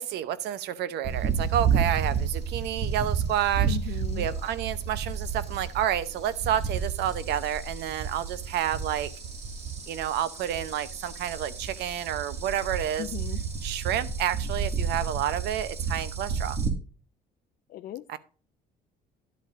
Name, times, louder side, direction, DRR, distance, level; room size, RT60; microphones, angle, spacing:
voice 1, 0.0-3.8 4.2-9.1 9.9-13.1 13.6-16.6 18.1-18.2, right 11 dB, 80° right, 0.8 m, -30 dB
sound 1, 1.0-16.7, right 6 dB, 40° right, 2.1 m, -31 dB
voice 2, 3.7-4.3 13.0-13.4 17.7-18.1, left 12 dB, 60° left, 0.5 m, -36 dB
10.5 x 8.2 x 2.6 m
cardioid pair, 110°, 17 cm